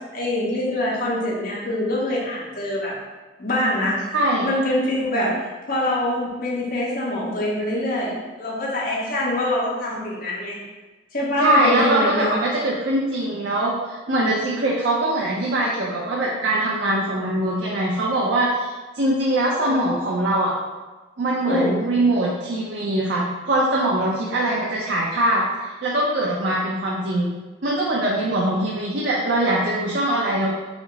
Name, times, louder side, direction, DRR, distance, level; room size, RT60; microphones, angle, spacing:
voice 1, 0.1-3.0 3.4-4.0 4.4-5.4 5.7-10.6 11.1-12.4 19.7-19.9 21.4-21.8, left 1 dB, 55° left, -5 dB, 1.1 m, -24 dB
voice 2, 4.1-4.5 11.4-20.5 21.2-27.3 27.6-30.5, right 1 dB, 75° right, -4 dB, 0.6 m, -22 dB
5.0 x 2.0 x 3.9 m, 1.2 s
head